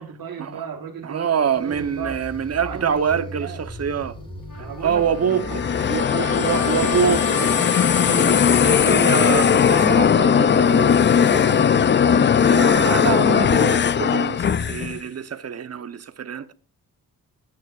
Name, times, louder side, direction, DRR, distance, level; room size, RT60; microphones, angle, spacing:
voice 1, 0.0-2.2 2.6-3.6 4.6-5.6 6.2-7.7 9.7-12.4, right 7 dB, 70° right, 1.5 m, -34 dB
voice 2, 1.0-4.1 4.6-7.2 8.0-10.9 12.4-16.5, right 7 dB, 45° right, 0.9 m, -25 dB
sound 1, 1.5-7.2, left 1 dB, 15° left, 4.0 m, -38 dB
Trumpet, 4.5-9.3, left 4 dB, 75° left, 3.1 m, -33 dB
sound 2, 5.2-15.0, left 7 dB, 35° left, 0.4 m, -18 dB
16.0 x 9.6 x 2.4 m
cardioid pair, 105°, 35 cm